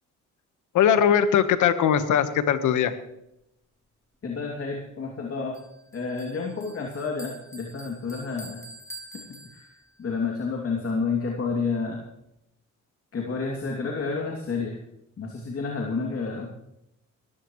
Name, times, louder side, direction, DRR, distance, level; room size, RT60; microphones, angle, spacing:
voice 1, 0.7-2.9, left 9 dB, 80° left, 10 dB, 1.4 m, -20 dB
voice 2, 4.2-5.6 5.9-8.6 9.5-9.7 10.0-12.0 13.1-14.8 15.2-16.5, left 4 dB, 50° left, -1 dB, 2.8 m, -30 dB
Bell, 5.5-10.1, right 1 dB, 10° left, 3.0 m, -46 dB
19.5 x 14.5 x 3.2 m, 0.84 s
cardioid pair, 90°, 30 cm